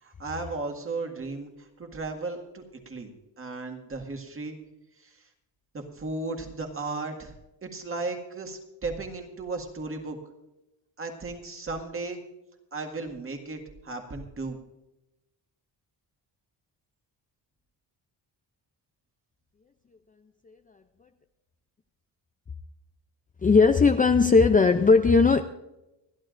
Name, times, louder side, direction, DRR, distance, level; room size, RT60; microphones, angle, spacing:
voice 1, 0.0-3.1 3.4-4.6 5.0-5.3 5.7-7.3 7.6-10.2 11.0-12.2 12.7-14.6, right 3 dB, 30° right, 1.9 m, -35 dB
voice 2, 23.4-25.4, left 4 dB, 20° left, 0.5 m, -18 dB
29.5 x 11.0 x 2.6 m
wide cardioid pair, 160°, 43 cm